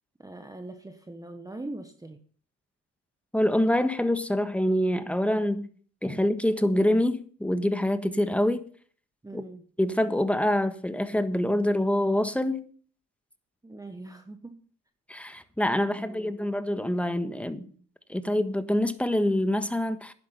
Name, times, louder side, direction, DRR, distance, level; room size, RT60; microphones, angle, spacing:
voice 1, 0.2-2.2 9.2-9.6 13.6-14.6 15.9-16.3, right 2 dB, 10° right, 1.1 m, -41 dB
voice 2, 3.3-5.7 6.0-8.6 9.3-9.4 9.8-12.6 15.1-17.7 18.1-20.1, left 1 dB, 5° left, 1.4 m, -25 dB
11.0 x 10.5 x 5.5 m
cardioid pair, 90°, 30 cm